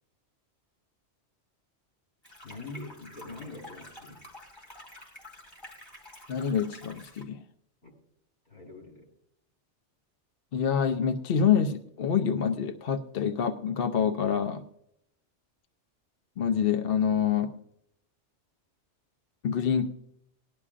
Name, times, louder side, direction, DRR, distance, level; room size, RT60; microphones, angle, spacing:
sound 1, 2.2-7.2, left 1 dB, 20° left, 2.9 m, -49 dB
voice 1, 2.4-4.2 7.8-7.9 8.5-9.1, left 2 dB, 80° left, 0 dB, 4.4 m, -44 dB
voice 2, 6.3-7.4 10.5-14.6 16.4-17.5 19.4-19.9, left 7 dB, 60° left, 7 dB, 0.8 m, -26 dB
19.0 x 11.0 x 2.5 m, 0.75 s
omnidirectional pair, 1.2 m